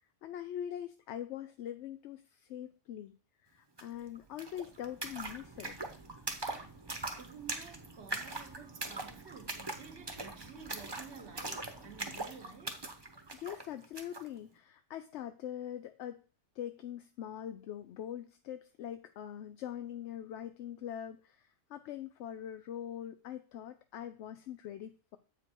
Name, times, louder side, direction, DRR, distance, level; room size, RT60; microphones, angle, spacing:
voice 1, 0.2-3.2 3.4-5.8 13.3-16.2 16.6-25.2, left 10 dB, 80° left, 0.9 m, -43 dB
sound 1, 3.8-3.9 4.1-14.3, right 2 dB, 25° right, 0.9 m, -42 dB
voice 2, 7.2-12.8, right 6 dB, 70° right, 1.5 m, -52 dB
7.7 x 5.3 x 4.5 m
omnidirectional pair, 1.2 m